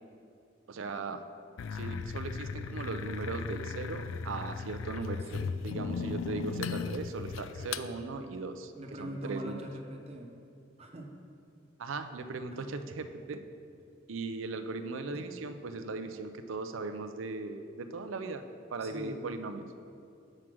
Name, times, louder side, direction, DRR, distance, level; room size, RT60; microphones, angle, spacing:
voice 1, 0.7-1.2 1.7-5.2 5.6-8.7 9.0-9.6 11.8-13.4 14.1-18.4 18.7-19.6, right 3 dB, 80° right, 9 dB, 0.5 m, -38 dB
sound 1, 1.6-7.9, left 5 dB, 80° left, 0.3 m, -37 dB
voice 2, 5.3-5.6 8.7-10.3 10.8-11.2 12.5-12.8 15.1-15.2 18.8-19.3, equal, 30° right, 1 dB, 0.8 m, -43 dB
7.4 x 4.9 x 6.0 m, 2.5 s
head